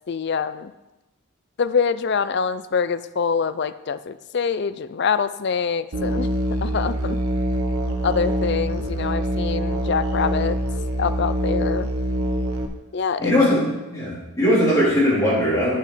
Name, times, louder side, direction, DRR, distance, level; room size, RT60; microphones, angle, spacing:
voice 1, 0.1-0.7 1.6-6.3 6.6-7.2 8.0-10.6 11.0-11.9 12.9-13.3, left 6 dB, 50° left, 13 dB, 0.4 m, -25 dB
Musical instrument, 5.9-12.7, equal, 80° right, 1.1 m, -24 dB
voice 2, 13.2-15.8, left 1 dB, 15° left, -8 dB, 3.7 m, -20 dB
9.9 x 6.6 x 5.0 m, 1.0 s
head